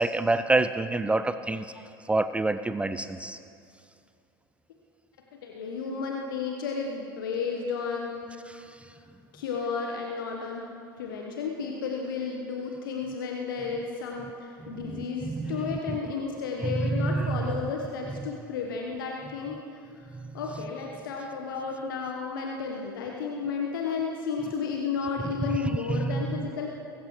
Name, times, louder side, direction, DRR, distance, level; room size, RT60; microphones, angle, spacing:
voice 1, 0.0-1.7 2.1-3.4 14.6-15.8 16.6-17.4 25.5-25.6 25.9-26.2, right 2 dB, 10° right, 12 dB, 0.4 m, -27 dB
voice 2, 5.4-8.3 9.3-10.7 11.0-19.6 20.3-26.7, left 5 dB, 65° left, 1 dB, 1.3 m, -32 dB
23.5 x 14.0 x 3.2 m, 2.5 s
figure-of-eight pair, 75°, 12 cm